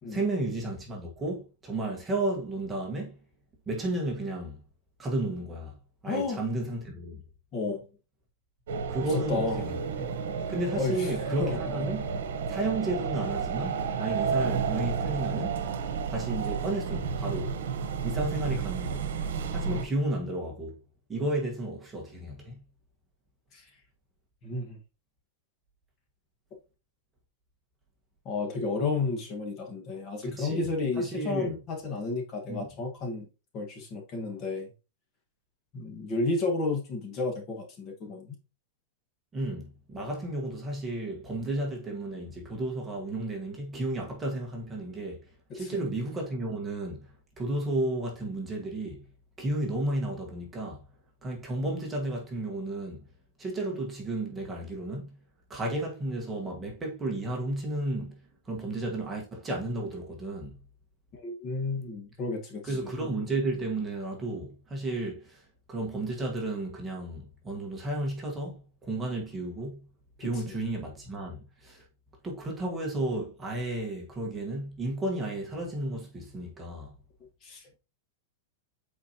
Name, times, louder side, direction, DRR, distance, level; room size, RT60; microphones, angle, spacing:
voice 1, 0.1-3.1 3.7-4.6 5.0-5.8 6.0-7.2 8.9-10.1 10.5-12.1 12.5-15.6 16.1-17.6 18.0-19.1 19.5-20.7 21.1-22.6 30.2-30.7 31.0-31.6 32.5-32.7 39.3-45.3 45.5-47.1 47.4-49.0 49.4-50.8 51.2-53.0 53.4-55.1 55.5-58.2 58.4-60.6 62.6-69.9 70.2-71.8 72.2-76.9, right 2 dB, 10° right, 1.3 m, -33 dB
voice 2, 6.0-6.4 7.5-7.9 9.1-9.7 10.7-11.1 11.4-11.8 23.5-23.7 24.4-24.8 28.2-33.3 33.5-34.7 35.7-38.4 45.6-45.9 61.1-62.9 70.3-70.6 77.4-77.8, left 3 dB, 30° left, 1.4 m, -32 dB
sound 1, 8.7-19.9, right 6 dB, 85° right, 1.0 m, -31 dB
8.1 x 4.3 x 2.8 m
supercardioid pair, 165°, 0 cm